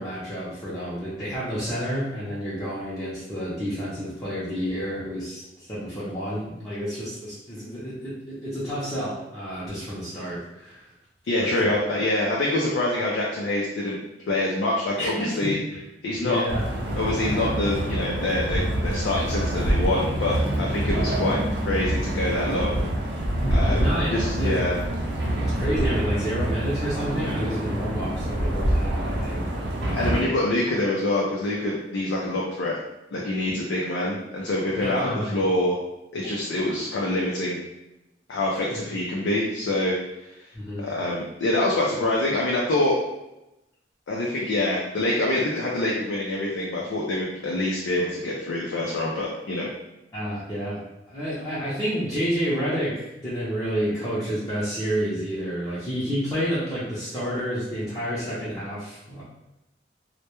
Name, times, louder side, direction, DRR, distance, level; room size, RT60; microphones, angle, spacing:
voice 1, 0.0-10.9 11.4-11.8 15.0-15.6 16.2-16.7 23.3-24.1 24.4-24.6 25.5-30.2 34.8-35.4 36.2-36.3 38.7-38.8 40.5-40.9 50.1-50.8 51.1-59.2, equal, 20° left, -10 dB, 0.6 m, -30 dB
voice 2, 11.3-14.0 14.3-15.6 16.0-16.4 17.0-21.4 21.7-22.8 23.5-24.8 29.9-32.8 33.1-35.8 36.1-37.6 38.3-40.0 40.8-43.0 44.1-49.7, left 1 dB, 90° left, -4 dB, 0.4 m, -25 dB
sound 1, 16.5-30.2, right 1 dB, 65° right, 0.5 m, -26 dB
2.2 x 2.1 x 2.9 m, 0.93 s
head